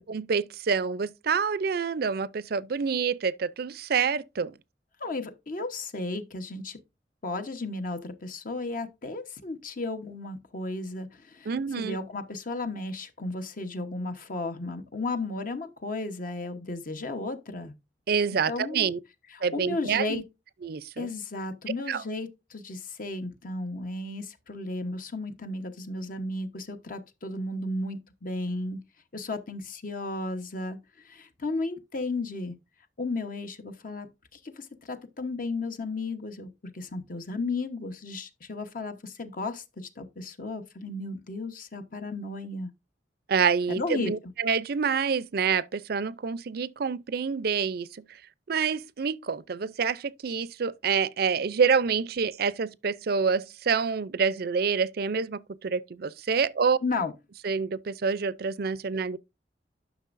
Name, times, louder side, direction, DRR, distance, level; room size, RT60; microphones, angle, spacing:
voice 1, 0.0-4.5 11.5-12.0 18.1-19.0 19.4-20.2 20.6-21.1 21.9-22.0 43.3-47.9 48.5-56.8 57.4-59.2, right 6 dB, 60° right, 0.5 m, -27 dB
voice 2, 5.0-6.8 7.2-17.7 18.5-18.9 19.3-20.2 21.0-28.8 29.1-32.6 33.0-42.7 43.7-44.3 56.8-57.1, left 2 dB, 50° left, 1.0 m, -34 dB
11.0 x 6.1 x 2.5 m
head